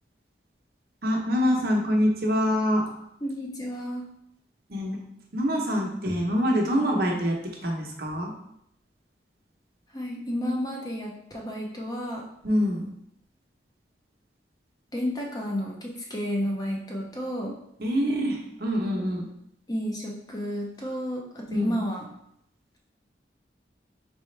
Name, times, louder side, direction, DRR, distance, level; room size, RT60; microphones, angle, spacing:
voice 1, 1.0-2.8 4.7-5.0 5.3-7.4 7.6-8.3 12.4-12.8 17.8-19.3 21.5-21.8, equal, 55° right, 0 dB, 0.8 m, -25 dB
voice 2, 3.2-4.1 9.9-12.2 14.9-17.5 18.8-19.0 19.7-22.1, equal, 20° left, -1 dB, 0.6 m, -31 dB
4.1 x 3.4 x 3.2 m, 0.76 s
head